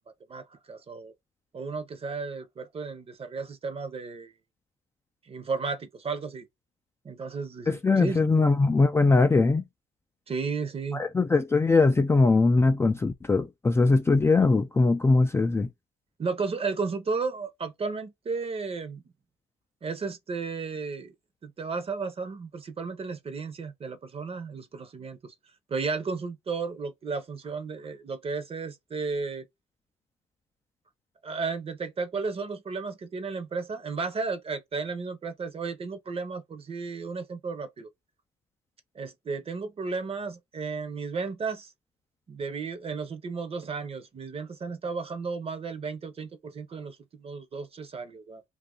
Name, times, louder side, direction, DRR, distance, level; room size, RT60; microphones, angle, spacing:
voice 1, 0.3-1.1 1.5-4.3 5.3-6.4 7.0-8.4 10.3-11.0 16.2-19.0 19.8-21.1 21.4-25.3 25.7-29.5 31.2-37.9 38.9-41.7 42.3-48.4, right 4 dB, 35° right, 0.8 m, -34 dB
voice 2, 7.7-9.6 10.9-15.7, left 3 dB, 15° left, 0.3 m, -21 dB
2.6 x 2.5 x 3.7 m
cardioid pair, 95°, 17 cm